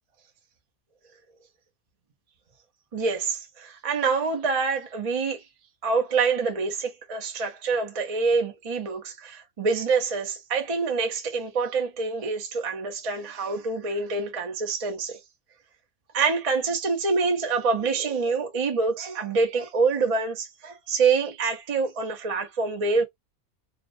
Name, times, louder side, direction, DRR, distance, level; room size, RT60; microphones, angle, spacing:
voice 1, 2.9-5.4 5.8-15.2 16.1-23.0, right 4 dB, 45° right, 0.4 m, -26 dB
2.5 x 2.1 x 2.5 m
omnidirectional pair, 1.5 m